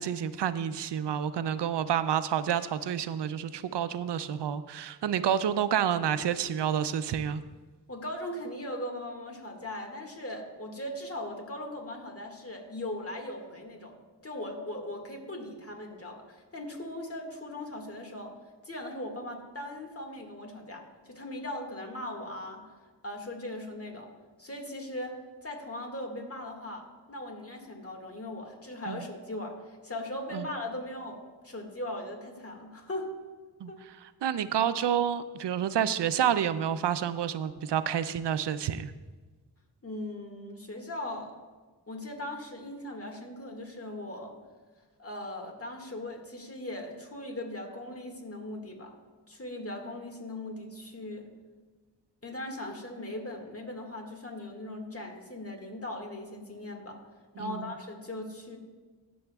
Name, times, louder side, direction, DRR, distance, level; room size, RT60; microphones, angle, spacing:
voice 1, 0.0-7.4 28.9-29.0 30.3-30.5 33.6-33.7 34.2-38.9 57.4-57.7, right 9 dB, 80° right, 13 dB, 0.5 m, -29 dB
voice 2, 7.9-13.9 14.2-18.3 18.6-22.6 23.0-24.1 24.4-33.1 33.7-33.8 39.8-41.3 41.9-44.4 45.0-48.9 49.3-51.3 52.2-57.0 57.4-58.6, left 1 dB, 35° left, 2 dB, 1.9 m, -39 dB
18.5 x 7.0 x 2.3 m, 1.3 s
cardioid pair, 45°, 41 cm